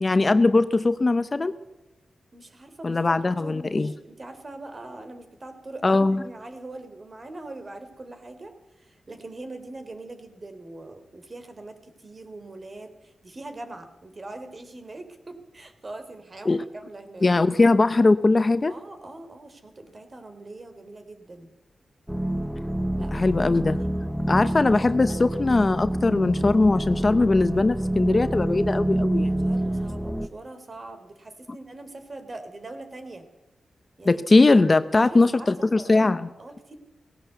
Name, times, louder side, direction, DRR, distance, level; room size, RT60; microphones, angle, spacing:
voice 1, 0.0-1.5 2.8-3.9 5.8-6.2 16.5-16.6 17.2-18.7 23.1-23.8 24.3-29.3 34.1-36.3, left 3 dB, 30° left, 13 dB, 0.8 m, -20 dB
voice 2, 2.3-3.1 3.4-17.3 18.7-21.5 23.0-23.9 24.4-25.0 29.4-33.2 34.0-34.4 34.9-36.1 36.4-36.8, right 2 dB, 35° right, 8 dB, 3.2 m, -42 dB
sound 1, 22.1-30.3, right 1 dB, 5° right, 0.8 m, -27 dB
18.5 x 17.0 x 8.1 m, 0.98 s
wide cardioid pair, 105°, 0 cm